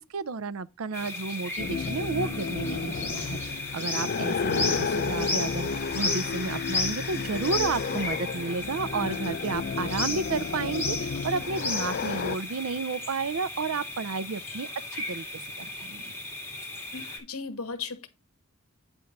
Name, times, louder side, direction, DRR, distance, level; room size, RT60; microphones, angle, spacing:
voice 1, 0.1-16.1, right 4 dB, 70° right, 0.5 m, -32 dB
sound 1, 0.9-17.2, left 3 dB, 10° left, 2.4 m, -34 dB
sound 2, 1.6-12.4, left 5 dB, 45° left, 0.4 m, -32 dB
voice 2, 16.6-18.1, left 5 dB, 85° left, 1.4 m, -37 dB
9.0 x 3.5 x 6.5 m
head